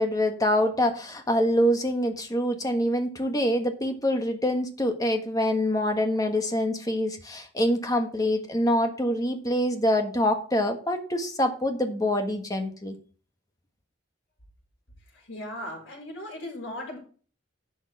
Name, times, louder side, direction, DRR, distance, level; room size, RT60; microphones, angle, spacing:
voice 1, 0.0-13.0, left 1 dB, 20° left, 5 dB, 1.5 m, -25 dB
voice 2, 15.1-17.0, left 1 dB, 70° left, -2 dB, 5.3 m, -37 dB
11.0 x 6.5 x 4.8 m, 0.41 s
head